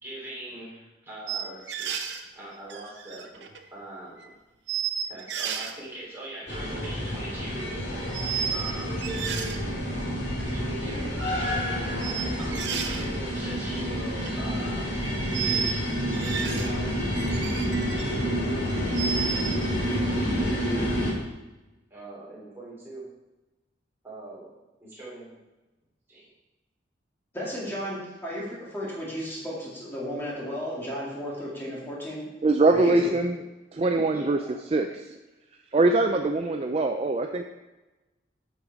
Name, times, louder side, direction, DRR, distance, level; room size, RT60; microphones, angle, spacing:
voice 1, 0.0-3.4 3.7-4.3 5.1-7.9 8.5-9.1 10.4-11.2 12.4-15.0 15.3-17.0 21.9-23.0 24.0-24.5 24.8-25.4 26.1-26.3 34.1-34.5, right 1 dB, 10° right, -7 dB, 3.0 m, -41 dB
sound 1, 1.3-2.2 2.7-3.7 4.2-4.3 4.7-5.7 6.5-6.8 8.1-8.7 9.0-9.6 10.4-10.5 12.0-13.0 14.0-14.3 15.3-15.8 16.1-16.8 17.2-18.1 18.5-19.6, right 7 dB, 65° right, 0.7 m, -32 dB
sound 2, 6.5-21.1, equal, 60° left, 2.4 m, -29 dB
voice 2, 27.3-32.3 32.7-33.1, equal, 10° left, -6 dB, 2.2 m, -34 dB
voice 3, 32.4-33.4 33.7-34.4 34.7-35.2 35.7-37.4, right 2 dB, 30° right, 4 dB, 0.4 m, -23 dB
8.1 x 5.5 x 4.8 m, 1.1 s
head